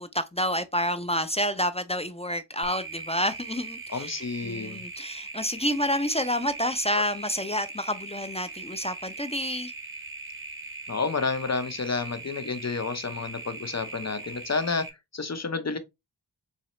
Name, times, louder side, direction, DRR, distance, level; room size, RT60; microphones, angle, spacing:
voice 1, 0.0-9.7, equal, 15° left, 0.3 m, -29 dB
sound 1, 2.6-14.9, right 3 dB, 30° right, 0.8 m, -40 dB
voice 2, 3.9-4.8 7.0-7.1 10.9-14.9 15.1-15.8, left 4 dB, 35° left, 0.7 m, -30 dB
4.0 x 2.8 x 3.0 m
wide cardioid pair, 45°, 45 cm